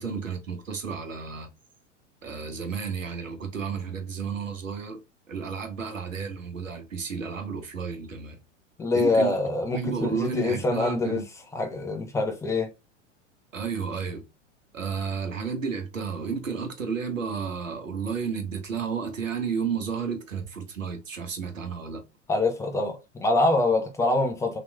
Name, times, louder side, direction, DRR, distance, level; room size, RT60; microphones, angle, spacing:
voice 1, 0.0-1.5 2.2-5.0 5.3-8.4 8.9-9.3 9.7-11.2 13.5-14.3 14.7-22.1, right 6 dB, 85° right, 0.9 m, -32 dB
voice 2, 8.8-11.2 11.5-12.7 22.3-24.6, left 2 dB, 10° left, 0.6 m, -25 dB
3.0 x 2.9 x 2.2 m
figure-of-eight pair, 95°, 38 cm